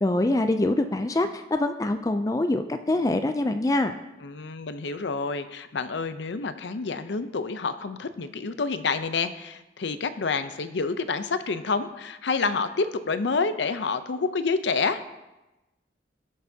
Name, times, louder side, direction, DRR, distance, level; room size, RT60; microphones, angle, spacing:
voice 1, 0.0-3.9, left 2 dB, 20° left, 8 dB, 0.3 m, -24 dB
voice 2, 4.2-15.0, left 4 dB, 80° left, 11 dB, 0.6 m, -28 dB
19.0 x 6.6 x 2.8 m, 1.0 s
head